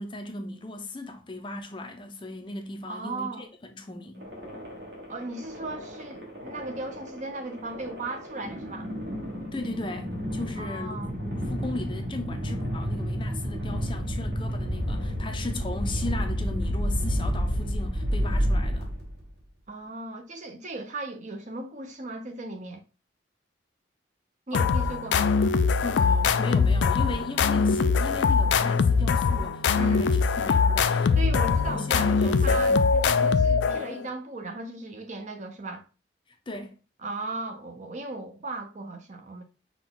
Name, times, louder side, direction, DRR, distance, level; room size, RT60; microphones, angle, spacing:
voice 1, 0.0-4.3 9.5-18.9 24.5-24.7 25.8-30.2 30.4-31.2 31.7-32.9 36.5-36.8, left 2 dB, 25° left, 0.5 m, -37 dB
voice 2, 2.9-3.5 5.1-8.9 10.6-11.1 19.7-22.8 24.5-25.3 29.8-30.1 31.1-35.8 37.0-39.4, right 2 dB, 40° right, 0.7 m, -37 dB
sound 1, 4.2-19.3, equal, 65° right, 1.6 m, -31 dB
sound 2, 24.5-34.1, left 5 dB, 75° left, 0.3 m, -22 dB
5.9 x 2.3 x 3.7 m
head